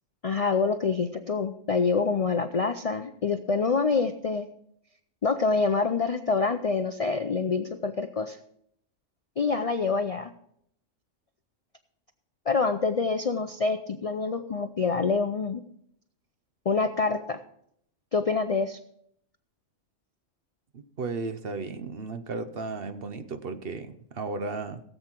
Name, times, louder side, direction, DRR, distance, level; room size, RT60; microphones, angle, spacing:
voice 1, 0.2-4.5 5.2-8.4 9.4-10.3 12.5-15.6 16.7-17.4 18.1-18.8, left 4 dB, 50° left, 8 dB, 0.4 m, -26 dB
voice 2, 20.7-24.8, right 4 dB, 55° right, 10 dB, 0.9 m, -34 dB
17.0 x 8.0 x 4.5 m, 0.71 s
omnidirectional pair, 1.3 m